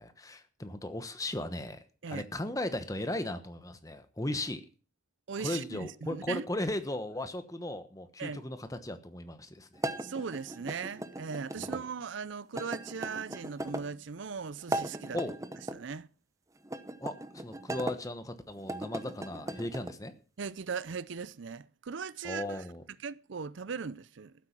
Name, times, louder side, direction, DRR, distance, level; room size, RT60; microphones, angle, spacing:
voice 1, 0.0-1.8 2.1-4.6 5.4-9.7 11.6-11.8 15.1-15.4 17.0-20.1 22.2-22.8, left 1 dB, 15° left, 1.1 m, -36 dB
voice 2, 5.3-6.4 8.2-8.4 10.0-15.2 15.7-16.1 20.4-22.6 23.0-24.3, right 5 dB, 75° right, 0.5 m, -38 dB
sound 1, 9.8-11.8 12.5-13.9 14.6-15.8 16.6-18.0 18.6-19.9, right 1 dB, 15° right, 0.8 m, -38 dB
14.5 x 8.3 x 6.0 m
head